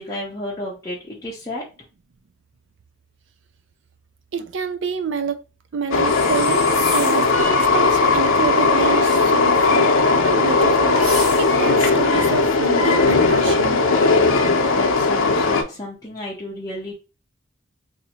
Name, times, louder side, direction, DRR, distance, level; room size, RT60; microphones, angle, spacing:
voice 1, 0.0-1.6 14.1-16.9, left 1 dB, 20° left, 0.7 m, -32 dB
voice 2, 4.3-5.4 5.7-9.9 10.2-11.1 11.4-13.8, right 5 dB, 65° right, 0.4 m, -27 dB
Train, 5.9-15.6, left 3 dB, 90° left, 0.7 m, -17 dB
sound 1, 6.0-7.4 10.9-11.8, left 1 dB, ahead, 1.2 m, -31 dB
2.7 x 2.7 x 4.2 m
head